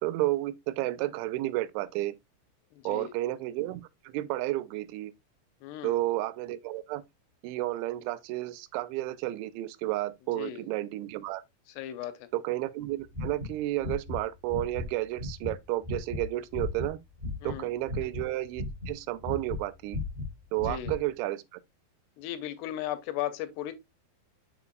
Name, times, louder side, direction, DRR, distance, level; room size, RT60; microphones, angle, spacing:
voice 1, 0.0-2.1 2.9-3.8 4.1-5.1 5.8-7.0 7.4-11.4 12.3-17.0 17.4-20.0 20.5-21.4, right 16 dB, 85° right, 3.0 m, -31 dB
voice 2, 2.7-3.1 5.6-6.0 10.4-10.7 11.7-12.3 17.4-17.7 20.6-20.9 22.2-23.8, left 12 dB, 80° left, 2.6 m, -36 dB
sound 1, 13.1-14.2 14.5-14.9 15.2-17.6 17.9-19.6 19.9-21.0, left 2 dB, 10° right, 2.4 m, -35 dB
6.9 x 6.8 x 2.3 m
omnidirectional pair, 5.4 m